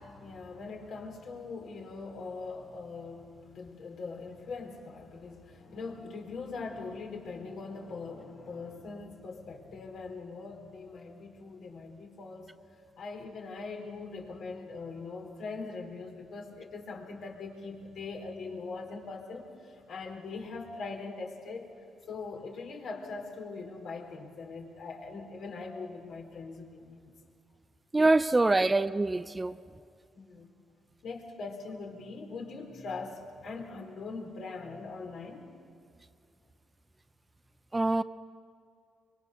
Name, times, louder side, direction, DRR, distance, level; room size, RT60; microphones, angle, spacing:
voice 1, 0.0-12.5 13.0-21.7 22.1-27.1 28.2-28.7 30.1-30.5 31.0-35.5, left 4 dB, 65° left, 1 dB, 4.2 m, -41 dB
voice 2, 27.9-29.6 37.7-38.0, right 2 dB, 20° right, 13 dB, 0.6 m, -24 dB
24.0 x 23.5 x 6.8 m, 2.3 s
cardioid pair, 90°, 0 cm